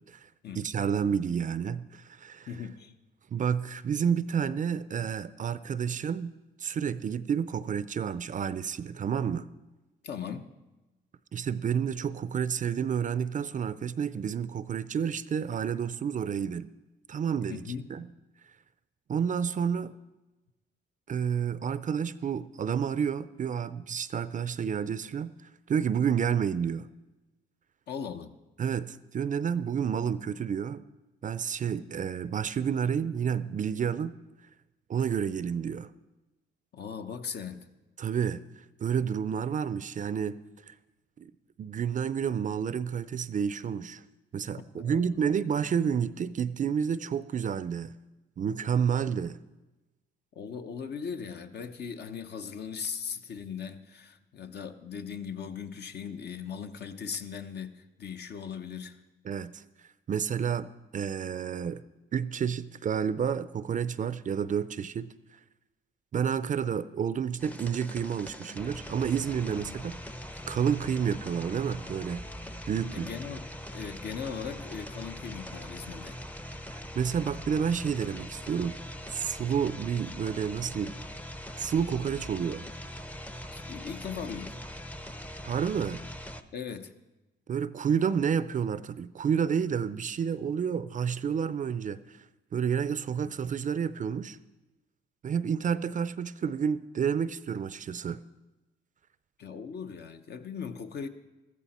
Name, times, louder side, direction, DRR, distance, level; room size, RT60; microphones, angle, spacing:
voice 1, 0.6-2.5 3.3-6.3 6.6-9.5 11.3-16.7 17.1-17.6 17.9-18.0 19.1-19.9 21.1-25.3 25.7-26.9 28.6-30.8 31.2-34.1 34.9-35.9 38.0-38.4 38.8-40.4 40.7-40.8 41.2-41.3 41.6-44.0 44.3-47.9 48.4-49.4 59.3-59.6 60.1-61.8 62.1-65.1 66.1-70.0 70.5-72.3 72.7-73.1 77.0-78.8 79.1-81.0 81.6-82.7 85.4-86.0 87.5-92.2 92.5-94.4 95.2-98.2, right 7 dB, 40° right, 15 dB, 0.5 m, -30 dB
voice 2, 2.5-2.9 10.0-10.5 17.5-17.9 27.9-28.4 36.7-37.7 44.7-45.2 50.3-59.0 69.5-69.8 72.9-76.2 76.5-76.7 83.5-84.6 86.5-86.9 93.2-93.3 99.4-101.1, left 6 dB, 55° left, 7 dB, 0.9 m, -39 dB
sound 1, 67.4-86.4, equal, 5° left, 0.6 m, -42 dB
14.5 x 13.5 x 4.2 m, 1.1 s
cardioid pair, 90°, 20 cm